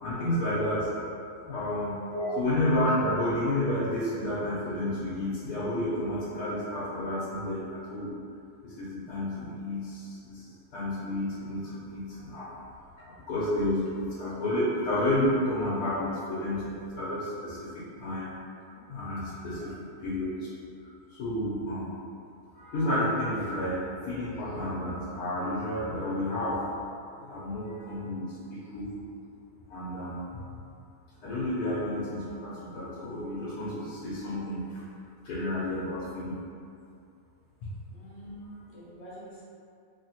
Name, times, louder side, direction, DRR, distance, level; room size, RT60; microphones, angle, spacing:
voice 1, 0.0-0.9 1.4-2.0 2.4-8.1 8.6-12.5 13.0-18.2 18.8-20.5 21.1-21.9 22.5-26.7 27.2-28.9 29.7-30.2 31.2-34.8 35.2-36.4, left 1 dB, 85° left, -9 dB, 1.2 m, -31 dB
voice 2, 37.9-39.4, right 1 dB, 65° left, -7 dB, 1.0 m, -39 dB
2.9 x 2.8 x 2.8 m, 2.5 s
omnidirectional pair, 1.6 m